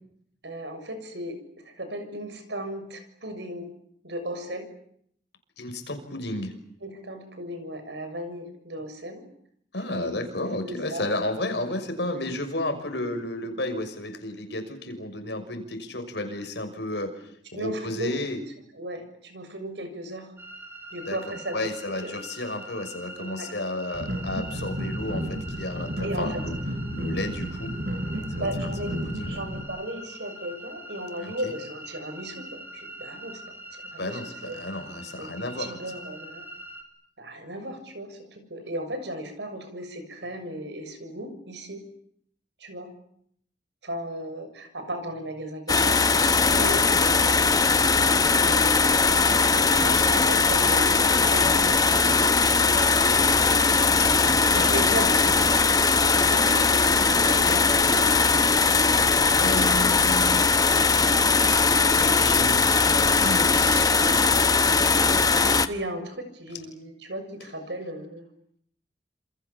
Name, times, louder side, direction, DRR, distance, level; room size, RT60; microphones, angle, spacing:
voice 1, 0.4-3.7 4.0-4.7 6.8-9.2 9.9-11.1 17.5-18.1 18.8-20.3 20.9-21.7 22.0-22.1 23.2-23.5 26.0-26.4 28.4-28.9 29.3-33.4 33.7-34.6 35.2-36.5 37.2-41.9 42.6-42.9 43.8-46.0 46.5-47.5 48.4-51.8 54.7-55.6 56.1-58.1 64.0-64.4 65.4-68.3, right 1 dB, 70° right, 8 dB, 6.9 m, -36 dB
voice 2, 5.6-6.5 9.7-17.1 17.5-18.4 21.0-21.2 21.5-26.5 26.9-27.7 28.4-29.4 31.2-31.5 34.0-35.8 46.5-46.7 54.5-54.7 59.4-61.4 61.8-63.9, left 1 dB, 65° left, 7 dB, 6.2 m, -32 dB
sound 1, 20.4-36.8, right 1 dB, 10° right, 5.3 m, -43 dB
sound 2, 23.9-29.6, equal, 50° right, 6.0 m, -32 dB
sound 3, 45.7-65.7, left 4 dB, 20° left, 1.1 m, -20 dB
28.0 x 28.0 x 7.3 m, 0.68 s
head